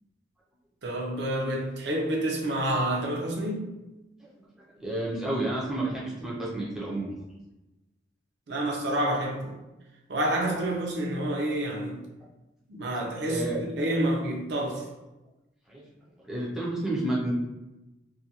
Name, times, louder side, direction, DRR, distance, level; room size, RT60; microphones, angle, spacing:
voice 1, 0.8-3.7 8.5-9.6 10.1-12.0 12.7-14.9, right 1 dB, 60° right, -1 dB, 0.5 m, -28 dB
voice 2, 4.8-7.1 13.3-13.6 15.7-15.8 16.2-17.3, right 1 dB, 5° right, -6 dB, 0.4 m, -30 dB
2.4 x 2.2 x 2.8 m, 1.0 s
head